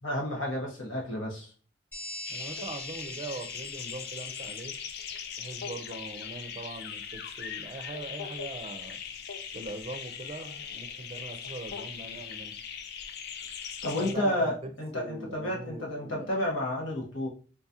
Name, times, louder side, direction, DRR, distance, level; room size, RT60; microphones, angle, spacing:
voice 1, 0.0-1.5 13.8-17.3, left 1 dB, 90° left, -1 dB, 1.1 m, -31 dB
sound 1, 1.9-6.2, equal, 10° left, 0.8 m, -44 dB
sound 2, 2.2-14.1, left 7 dB, 60° left, 0.3 m, -40 dB
voice 2, 2.3-4.7 5.4-9.0 9.5-12.5 13.9-16.3, right 2 dB, 30° right, 7 dB, 0.4 m, -41 dB
3.9 x 2.4 x 2.7 m, 0.39 s
head